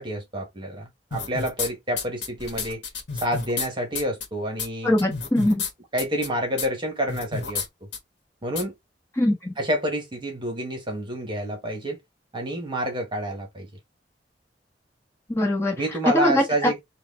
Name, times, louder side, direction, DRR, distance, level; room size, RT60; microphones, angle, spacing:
voice 1, 0.0-2.8 3.2-5.0 5.9-7.6 8.4-8.7 9.6-12.0 12.3-13.7 15.8-16.8, right 1 dB, 30° right, 1.5 m, -28 dB
sound 1, 1.1-1.7 2.0-3.7 3.9-4.2 4.6-4.7 5.0-5.7 6.0-6.3 6.6-6.7 7.1-7.7 7.9-8.0 8.6-8.7, left 5 dB, 80° left, 1.3 m, -30 dB
voice 2, 4.8-5.6 9.2-9.6 15.3-15.7 16.1-16.7, left 1 dB, 15° left, 1.3 m, -22 dB
4.7 x 2.4 x 3.6 m
head